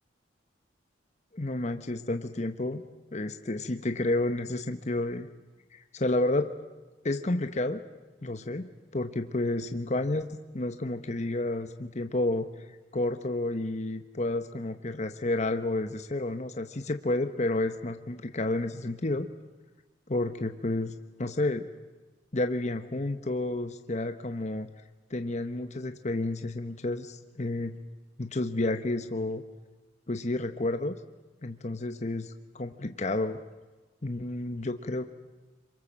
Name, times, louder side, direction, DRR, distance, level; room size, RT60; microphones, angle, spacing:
voice 1, 1.3-2.8 3.1-5.3 5.7-6.5 7.0-7.8 8.2-10.3 10.5-12.5 12.9-19.3 20.1-21.7 22.3-24.7 25.1-27.8 28.2-29.4 30.1-30.9 31.4-33.4 34.0-35.1, left 2 dB, 35° left, 7 dB, 1.0 m, -30 dB
27.5 x 25.0 x 7.4 m, 1.2 s
head